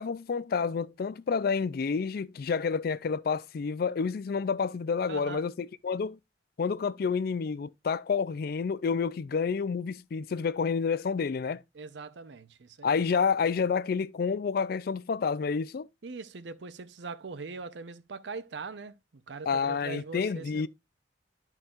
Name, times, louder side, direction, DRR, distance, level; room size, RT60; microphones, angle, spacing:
voice 1, 0.0-6.2 6.6-11.6 12.8-15.9 19.5-20.7, left 5 dB, 55° left, 0.4 m, -29 dB
voice 2, 5.1-5.4 11.7-13.0 16.0-19.0 19.3-20.7, right 4 dB, 75° right, 0.6 m, -41 dB
12.0 x 4.5 x 2.4 m
head